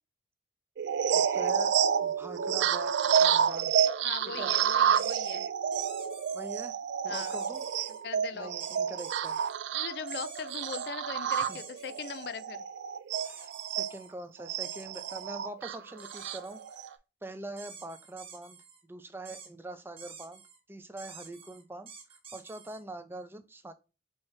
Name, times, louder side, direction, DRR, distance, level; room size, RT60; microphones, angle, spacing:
sound 1, 0.8-13.9 14.5-16.9, right 8 dB, 75° right, 0.3 m, -29 dB
voice 1, 1.1-3.8 4.4-4.5 6.3-6.8 7.0-7.6 8.3-9.4 11.5-11.6 13.2-18.6 18.9-20.4 20.7-23.7, right 2 dB, 10° right, 0.4 m, -44 dB
voice 2, 4.0-5.5 7.1-7.4 8.0-8.5 9.7-12.6, left 6 dB, 60° left, 0.4 m, -40 dB
sound 2, 4.9-5.3 5.7-6.7 7.1-8.0 8.6-9.5 10.1-10.9 11.3-12.3 13.1-14.1 14.6-15.3 16.0-16.9 17.6-18.8 19.3-19.5 20.0-20.6 21.0-22.8, right 6 dB, 30° right, 0.9 m, -49 dB
4.6 x 3.0 x 3.2 m
head